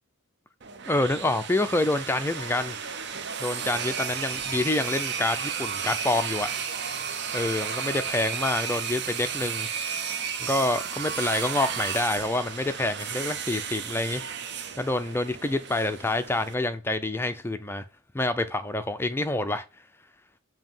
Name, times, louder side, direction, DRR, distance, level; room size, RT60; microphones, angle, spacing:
sound 1, 0.6-16.5, right 7 dB, 50° right, 0.7 m, -33 dB
voice 1, 0.9-2.8 3.4-6.5 7.3-9.7 10.4-14.2 14.8-17.8 18.1-19.6, left 2 dB, 10° left, 0.4 m, -27 dB
7.3 x 2.9 x 5.4 m
head